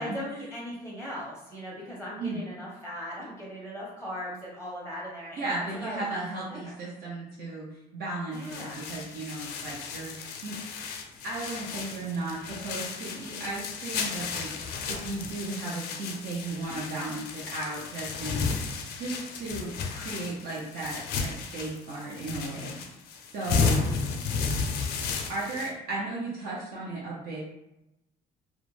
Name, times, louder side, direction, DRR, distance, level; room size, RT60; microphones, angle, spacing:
voice 1, 0.0-6.7 8.3-8.8 14.7-15.1 23.6-23.9, equal, 10° right, -5 dB, 0.7 m, -39 dB
voice 2, 5.4-10.6 11.2-14.5 14.8-18.4 19.0-22.8 23.3-23.8 25.3-27.4, right 2 dB, 65° right, -5 dB, 0.6 m, -35 dB
sound 1, 8.3-25.7, left 5 dB, 75° left, 0.4 m, -33 dB
2.4 x 2.1 x 3.1 m, 0.92 s
cardioid pair, 110°, 17 cm